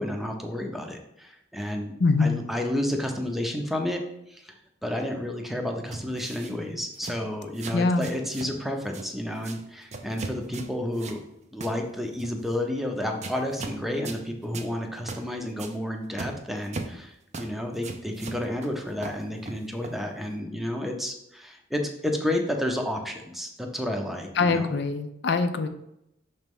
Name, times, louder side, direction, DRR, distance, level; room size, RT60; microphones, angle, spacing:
voice 1, 0.0-1.9 2.2-4.0 4.3-4.6 4.8-11.2 11.5-24.7, left 1 dB, ahead, 3 dB, 0.7 m, -31 dB
voice 2, 2.0-2.4 7.7-8.1 24.4-25.7, left 4 dB, 60° left, 8 dB, 0.5 m, -23 dB
sound 1, 5.9-6.5 6.9-7.2 7.5-8.6 8.8-9.1 9.4-9.6 9.9-11.2 11.6-11.8 12.2-12.5 13.2-13.8 14.0-14.2 14.5-14.7 15.1-15.3 15.6-15.7 16.2-17.0 17.3-17.5 17.8-18.7 19.0-20.0, right 3 dB, 40° right, 0.5 m, -38 dB
5.8 x 3.2 x 5.3 m, 0.81 s
head